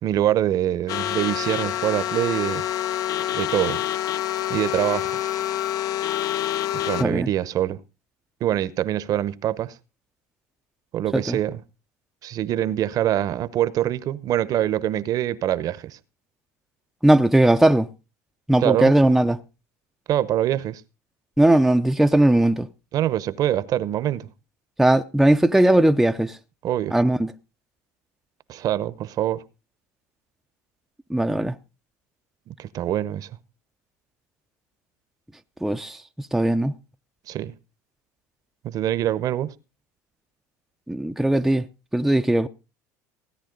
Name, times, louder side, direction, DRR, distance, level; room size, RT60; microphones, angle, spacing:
voice 1, 0.0-2.7 3.3-3.8 4.5-5.1 6.7-7.8 8.4-9.8 10.9-11.6 12.2-16.0 18.6-18.9 20.1-20.8 22.9-24.3 26.6-26.9 28.5-29.4 32.5-33.3 37.3-37.5 38.6-39.5, right 12 dB, 50° right, 0.9 m, -24 dB
sound 1, 0.9-7.0, left 12 dB, 50° left, 0.7 m, -27 dB
voice 2, 17.0-17.9 18.5-19.4 21.4-22.7 24.8-26.4 26.9-27.3 31.1-31.6 35.6-36.7 40.9-41.7 41.9-42.5, right 1 dB, 5° right, 0.5 m, -19 dB
16.5 x 10.0 x 3.9 m
supercardioid pair, 100°, 8 cm